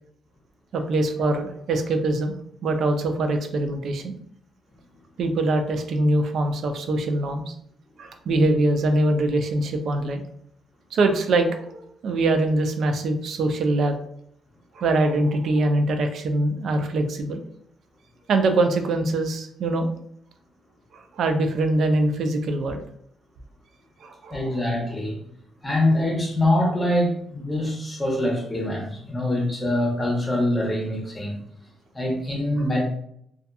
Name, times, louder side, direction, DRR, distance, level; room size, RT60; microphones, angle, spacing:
voice 1, 0.7-2.4 2.6-4.1 5.2-7.5 8.0-10.2 10.9-14.0 14.8-17.4 18.3-19.9 20.9-22.8 24.0-24.5, right 2 dB, 65° right, 6 dB, 0.4 m, -23 dB
voice 2, 24.3-25.2 25.6-31.4 31.9-32.8, left 1 dB, 10° left, 0 dB, 0.9 m, -24 dB
2.6 x 2.3 x 2.3 m, 0.70 s
cardioid pair, 90°, 0 cm